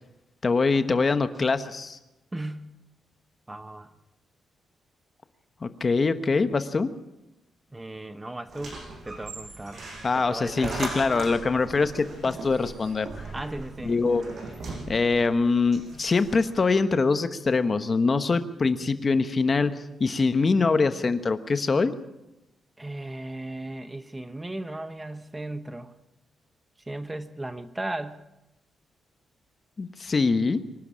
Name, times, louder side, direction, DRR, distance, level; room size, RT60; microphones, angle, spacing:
voice 1, 0.4-2.0 5.6-6.9 10.0-13.1 13.8-14.2 14.9-19.7 20.0-21.9 29.8-30.6, left 4 dB, 30° left, 11 dB, 1.1 m, -23 dB
voice 2, 2.3-2.8 3.5-3.9 7.7-8.8 9.0-9.8 10.1-11.3 13.3-13.9 22.8-25.9 26.8-28.3, right 1 dB, 15° right, 11 dB, 1.1 m, -36 dB
sound 1, 8.5-16.6, right 3 dB, 50° right, 6.4 m, -39 dB
25.0 x 12.0 x 8.7 m, 0.93 s
cardioid pair, 125°, 0 cm